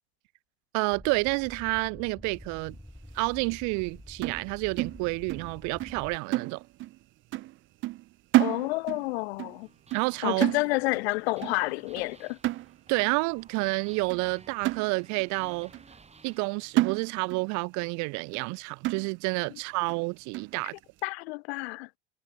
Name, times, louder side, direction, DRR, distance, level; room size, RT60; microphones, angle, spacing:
voice 1, 0.7-2.8 3.1-6.6 9.9-10.4 12.9-15.7 16.2-20.7, right 30 dB, 65° right, 1.3 m, -29 dB
sound 1, 0.9-6.2, left 1 dB, 5° left, 2.4 m, -48 dB
sound 2, 4.2-5.5 5.8-6.0 6.3-7.0 7.3-7.6 7.8-9.1 9.4-9.6 9.9-10.2 10.4-11.1 11.4-11.7 12.0-12.1 12.4-13.1 13.6-13.7 14.1-14.2 14.6-15.3 15.7-15.8 16.3-16.4 16.8-17.5 17.8-17.9 18.3-18.5 18.8-19.4 19.9-20.0 20.3-20.6, right 17 dB, 40° right, 0.4 m, -30 dB
voice 2, 8.4-9.7 10.2-12.4 21.0-21.9, left 23 dB, 80° left, 0.6 m, -29 dB
sound 3, 9.6-17.3, right 4 dB, 20° right, 4.2 m, -56 dB
hypercardioid pair, 80°, 31 cm